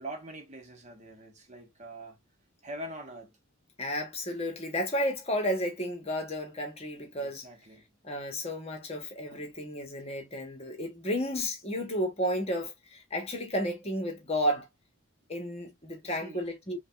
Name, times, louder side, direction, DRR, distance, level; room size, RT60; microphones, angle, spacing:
voice 1, 0.0-2.2 2.6-3.3 7.2-7.8 9.3-9.5 16.0-16.4, right 1 dB, 35° right, 1.0 m, -44 dB
voice 2, 3.8-7.5 8.0-14.7 15.3-16.8, equal, 30° left, 1.2 m, -32 dB
5.1 x 2.3 x 2.5 m
head